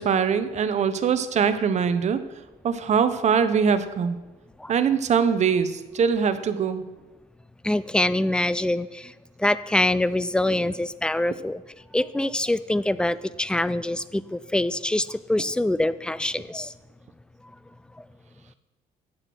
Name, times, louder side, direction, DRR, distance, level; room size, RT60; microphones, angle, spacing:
voice 1, 0.0-2.2 2.6-4.2 4.7-6.8, right 6 dB, 45° right, 11 dB, 0.8 m, -22 dB
voice 2, 7.6-9.1 9.4-11.6 11.9-16.7, left 1 dB, 5° left, 16 dB, 0.4 m, -24 dB
8.8 x 7.8 x 6.1 m, 1.1 s
cardioid pair, 110°, 17 cm